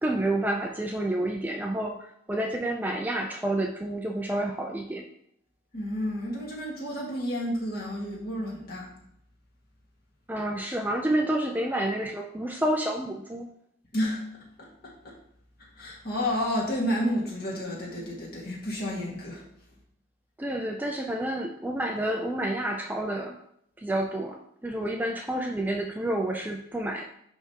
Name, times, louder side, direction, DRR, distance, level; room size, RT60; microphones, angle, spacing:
voice 1, 0.0-2.0 2.3-5.1 10.3-13.5 20.4-23.4 23.8-27.0, right 1 dB, 10° right, 1 dB, 0.4 m, -29 dB
voice 2, 5.7-8.9 13.9-14.2 14.8-14.9 15.8-19.4, equal, 45° left, -3 dB, 1.8 m, -30 dB
10.0 x 3.5 x 2.9 m, 0.72 s
head